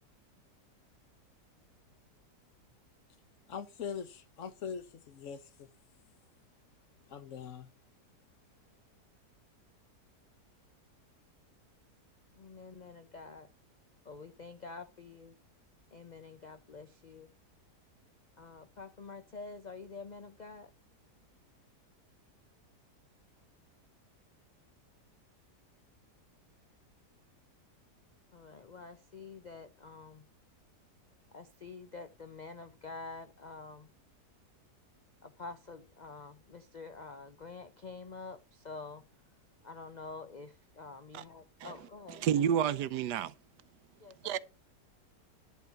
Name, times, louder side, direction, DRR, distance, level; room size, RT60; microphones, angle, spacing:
voice 1, 3.5-5.7 7.1-7.7, left 7 dB, 55° left, 1.1 m, -42 dB
voice 2, 12.3-13.5 14.0-15.4 15.9-17.3 18.4-20.7 28.3-30.3 31.3-33.9 35.2-39.0 39.6-42.6 44.0-44.3, left 4 dB, 75° left, 0.4 m, -47 dB
voice 3, 42.2-43.3 44.2-44.4, right 9 dB, 85° right, 1.3 m, -29 dB
11.0 x 3.9 x 6.9 m
omnidirectional pair, 1.8 m